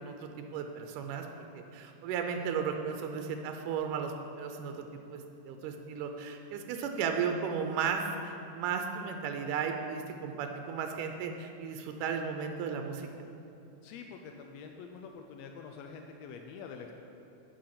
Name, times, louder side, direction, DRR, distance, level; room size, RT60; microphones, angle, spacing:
voice 1, 0.0-13.1, right 6 dB, 85° right, 5 dB, 2.2 m, -35 dB
voice 2, 13.8-16.9, left 5 dB, 85° left, 3 dB, 1.5 m, -46 dB
8.7 x 7.6 x 5.8 m, 2.7 s
omnidirectional pair, 3.6 m